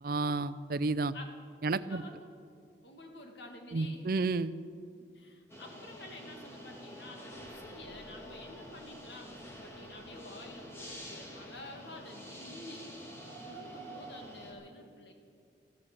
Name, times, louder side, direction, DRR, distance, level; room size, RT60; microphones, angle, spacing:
voice 1, 0.0-1.1 1.6-2.0 3.7-4.5, right 3 dB, 55° right, 16 dB, 0.5 m, -31 dB
voice 2, 1.7-2.3 2.8-4.1 5.0-12.9 13.4-15.1, left 1 dB, 75° left, 3 dB, 2.3 m, -50 dB
sound 1, 5.5-14.5, equal, 15° left, 2.2 m, -47 dB
14.0 x 14.0 x 6.9 m, 2.2 s
head